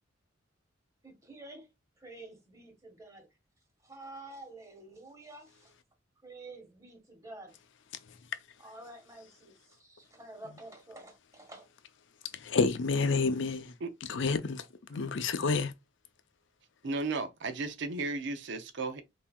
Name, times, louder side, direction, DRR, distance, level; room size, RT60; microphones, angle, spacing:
voice 1, 1.0-1.7 2.0-3.3 3.8-5.7 6.2-7.6 8.6-11.7, right 2 dB, 15° right, 1.4 m, -49 dB
voice 2, 12.3-13.7 14.1-15.7, left 4 dB, 70° left, 0.6 m, -29 dB
voice 3, 16.8-19.0, right 3 dB, 70° right, 0.5 m, -34 dB
5.6 x 2.7 x 2.3 m
head